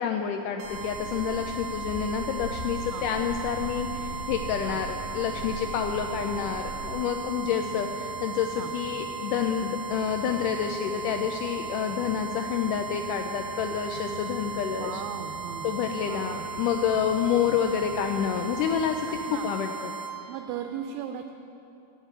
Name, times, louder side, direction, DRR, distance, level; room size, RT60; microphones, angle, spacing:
voice 1, 0.0-15.0 15.6-20.0, left 8 dB, 85° left, 5 dB, 1.8 m, -28 dB
sound 1, 0.6-6.9, right 1 dB, 55° left, 5.0 m, -40 dB
sound 2, 0.6-20.1, right 5 dB, 60° right, 2.1 m, -37 dB
sound 3, 2.9-19.2, right 1 dB, 30° left, 1.5 m, -45 dB
voice 2, 14.7-15.7 16.1-16.5 19.3-19.5 20.3-21.3, right 9 dB, 80° right, 6 dB, 2.3 m, -37 dB
16.0 x 6.9 x 8.8 m, 3.0 s
omnidirectional pair, 4.4 m